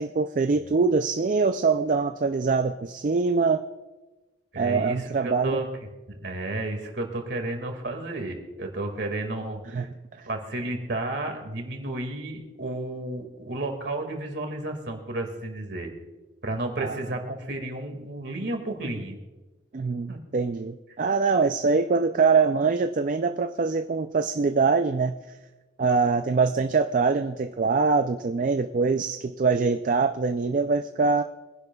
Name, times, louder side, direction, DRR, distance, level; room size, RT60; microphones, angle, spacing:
voice 1, 0.0-3.6 4.6-5.6 9.7-9.9 10.1-10.3 16.8-17.0 19.7-25.2 25.8-31.2, right 4 dB, 40° right, 8 dB, 0.4 m, -23 dB
voice 2, 4.5-5.7 6.1-9.9 10.3-15.9 16.4-19.2 20.1-20.2, right 2 dB, 60° right, 4 dB, 2.0 m, -32 dB
23.5 x 10.5 x 2.3 m, 1.2 s
head